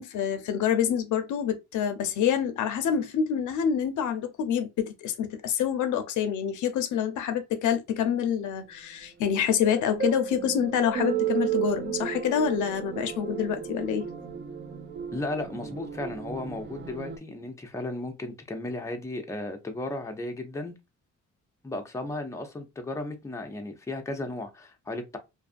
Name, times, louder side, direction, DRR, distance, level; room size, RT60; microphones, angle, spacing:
voice 1, 0.0-14.1, left 8 dB, 80° left, 0.6 m, -27 dB
sound 1, 9.3-17.2, right 9 dB, 40° right, 0.6 m, -33 dB
voice 2, 15.1-20.7 21.6-25.2, left 2 dB, 10° left, 0.6 m, -35 dB
2.6 x 2.4 x 2.5 m
cardioid pair, 90°, 30 cm